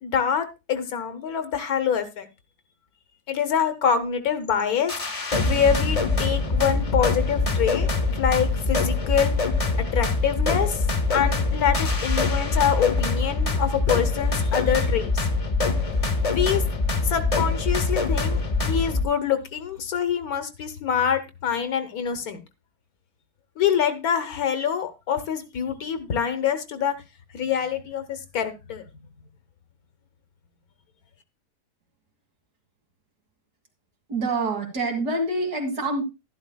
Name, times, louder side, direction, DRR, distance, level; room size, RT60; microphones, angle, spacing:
voice 1, 0.0-2.3 3.3-4.9 5.4-7.9 8.2-9.3 9.8-10.8 11.1-15.3 16.3-16.6 17.0-22.4 23.6-26.9 27.3-28.8, left 8 dB, 65° left, 10 dB, 1.4 m, -25 dB
sound 1, 4.9-19.0, left 3 dB, 30° left, 0.7 m, -24 dB
voice 2, 34.1-36.0, right 2 dB, 75° right, 3 dB, 2.6 m, -26 dB
12.0 x 11.0 x 2.2 m, 0.24 s
omnidirectional pair, 1.7 m